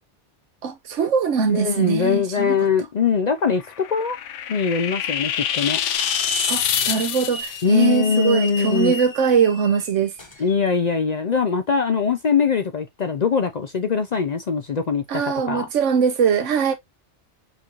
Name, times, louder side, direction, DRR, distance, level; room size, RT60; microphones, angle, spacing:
voice 1, 0.6-2.6 6.5-10.1 15.1-16.7, right 6 dB, 90° right, 1.2 m, -21 dB
voice 2, 1.5-4.2 4.5-5.8 7.6-9.0 10.4-15.2 15.5-15.7, left 6 dB, 50° left, 0.5 m, -22 dB
sound 1, 3.5-7.6, left 9 dB, 90° left, 1.0 m, -26 dB
Hiss / Alarm, 6.0-10.8, left 1 dB, 25° left, 0.8 m, -33 dB
5.5 x 3.0 x 2.4 m
omnidirectional pair, 1.2 m